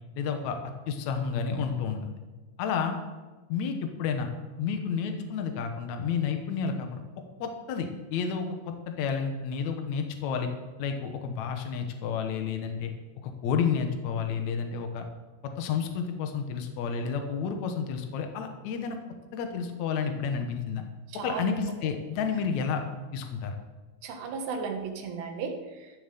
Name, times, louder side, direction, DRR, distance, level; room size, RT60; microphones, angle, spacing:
voice 1, 0.2-0.6 0.9-2.1 2.6-3.0 3.5-4.3 4.6-7.0 7.4-10.5 10.8-12.9 13.2-15.1 15.4-19.0 19.3-20.8 21.2-22.8 23.1-23.5, left 6 dB, 75° left, 5 dB, 1.7 m, -30 dB
voice 2, 21.1-21.5 24.0-26.0, right 5 dB, 80° right, 3 dB, 3.6 m, -35 dB
14.5 x 7.0 x 6.8 m, 1.2 s
omnidirectional pair, 4.9 m